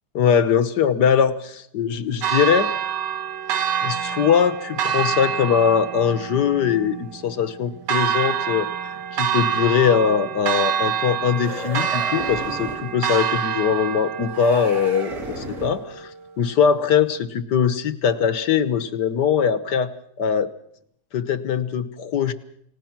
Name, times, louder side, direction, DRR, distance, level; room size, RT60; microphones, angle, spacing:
voice 1, 0.2-2.7 3.8-16.1 16.4-19.9 20.2-20.5 21.1-22.3, left 7 dB, 75° left, 13 dB, 1.7 m, -21 dB
Church bell, 2.2-16.2, right 8 dB, 80° right, 1.8 m, -27 dB
sound 1, 11.3-12.9 14.3-15.9, right 1 dB, 55° right, 4.6 m, -34 dB
29.0 x 17.5 x 6.0 m, 0.70 s
omnidirectional pair, 1.8 m